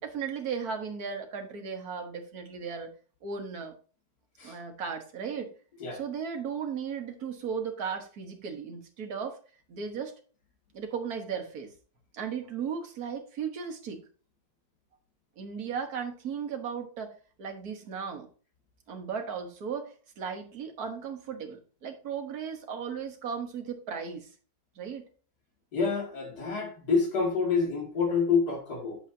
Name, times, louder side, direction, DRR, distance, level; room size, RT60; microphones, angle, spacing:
voice 1, 0.0-2.9 3.2-3.7 4.4-5.5 5.9-9.4 9.7-10.1 10.7-11.7 12.1-14.0 15.4-18.3 18.9-24.3 24.7-25.1, right 6 dB, 70° right, 1.8 m, -36 dB
voice 2, 25.7-29.0, left 5 dB, 80° left, 2.8 m, -27 dB
9.4 x 7.1 x 2.7 m
omnidirectional pair, 1.7 m